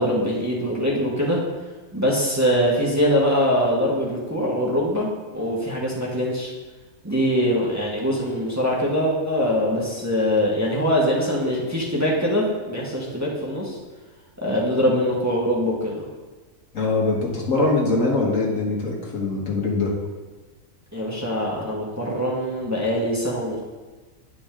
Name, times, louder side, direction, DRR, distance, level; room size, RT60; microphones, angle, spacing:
voice 1, 0.0-1.4 1.9-6.5 7.0-13.8 14.4-16.0 20.9-23.6, equal, 15° right, -5 dB, 1.3 m, -23 dB
voice 2, 16.7-19.9, left 3 dB, 70° left, -2 dB, 1.9 m, -22 dB
9.9 x 5.2 x 3.7 m, 1.3 s
omnidirectional pair, 1.4 m